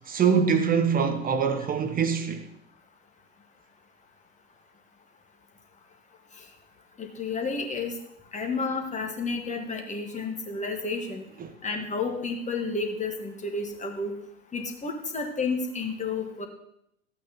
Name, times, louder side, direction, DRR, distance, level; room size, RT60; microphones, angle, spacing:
voice 1, 0.1-2.4 11.4-11.5, right 6 dB, 20° right, 0.8 m, -24 dB
voice 2, 7.0-7.9 8.3-11.2 11.6-14.1 14.5-16.5, left 4 dB, 15° left, 1.5 m, -31 dB
13.5 x 8.4 x 3.0 m
figure-of-eight pair, 85°, 43 cm